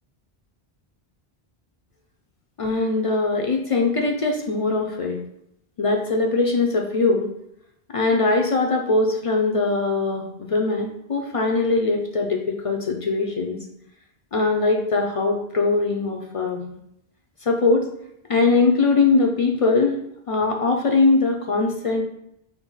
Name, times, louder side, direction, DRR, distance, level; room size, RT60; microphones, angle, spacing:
voice 1, 2.6-5.2 5.8-7.3 7.9-13.6 14.3-16.6 17.4-17.9 18.3-20.0 20.3-22.0, left 3 dB, 55° left, 1 dB, 0.4 m, -21 dB
4.5 x 2.1 x 3.9 m, 0.76 s
omnidirectional pair, 1.0 m